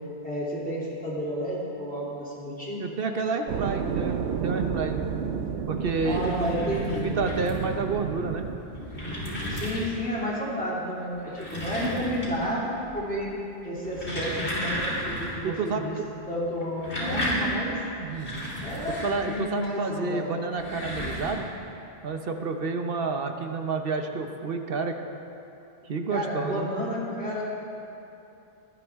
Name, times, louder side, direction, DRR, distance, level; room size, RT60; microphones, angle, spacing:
voice 1, 0.2-2.8 6.0-7.2 9.5-13.3 13.6-16.0 16.3-17.8 18.6-20.3 26.1-27.4, equal, 10° left, -7 dB, 2.9 m, -31 dB
voice 2, 2.8-5.0 5.7-6.3 7.0-8.5 15.4-16.1 18.0-18.5 19.0-21.5 22.0-25.0 25.8-26.7, right 4 dB, 60° right, 5 dB, 1.0 m, -29 dB
sound 1, 3.5-8.6, right 7 dB, 85° right, 1.0 m, -31 dB
sound 2, 5.8-7.7 8.4-10.1 11.1-12.5 12.8-13.3 13.7-15.4 15.7-15.8 16.6-19.7 20.4-21.3, equal, 80° left, 3.6 m, -33 dB
18.5 x 11.5 x 3.5 m, 2.8 s
omnidirectional pair, 1.1 m